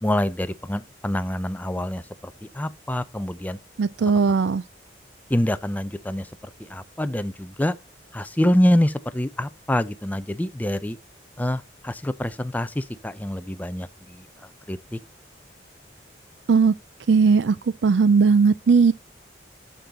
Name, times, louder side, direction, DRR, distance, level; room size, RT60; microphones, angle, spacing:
voice 1, 0.0-3.6 5.3-6.3 6.6-7.7 8.1-11.0 11.4-14.3 14.7-15.0, left 1 dB, 10° left, 0.5 m, -25 dB
voice 2, 3.8-4.6 16.5-16.7 17.1-17.6 17.8-18.9, right 5 dB, 80° right, 0.4 m, -17 dB
11.5 x 3.9 x 4.1 m
head